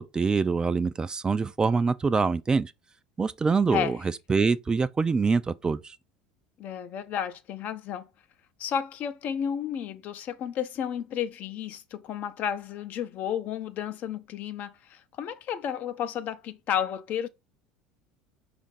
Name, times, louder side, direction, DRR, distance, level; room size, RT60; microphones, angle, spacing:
voice 1, 0.0-2.7 3.2-4.0 4.3-6.0, right 4 dB, 20° right, 0.4 m, -25 dB
voice 2, 6.6-8.1 8.6-17.3, left 9 dB, 50° left, 0.6 m, -32 dB
5.0 x 2.5 x 4.1 m
hypercardioid pair, 80°, 4 cm